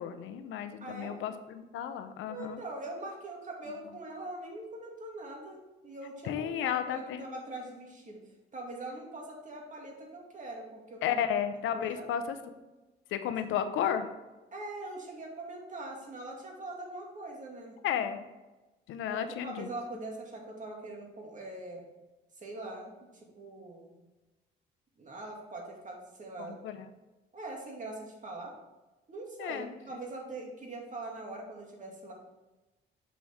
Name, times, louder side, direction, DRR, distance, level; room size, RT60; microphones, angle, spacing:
voice 1, 0.0-2.6 6.2-7.3 11.0-12.4 13.1-14.1 17.8-18.2 18.9-19.7 26.4-26.9 29.4-30.0, left 9 dB, 90° left, 9 dB, 0.7 m, -33 dB
voice 2, 0.8-1.2 2.3-8.2 8.5-11.2 11.7-12.0 14.5-17.8 19.1-21.8 22.4-23.1 23.4-24.0 25.0-26.6 27.3-28.5 29.1-32.1, right 2 dB, 40° right, 0 dB, 2.4 m, -42 dB
7.3 x 6.2 x 3.6 m, 1.1 s
cardioid pair, 90°, 20 cm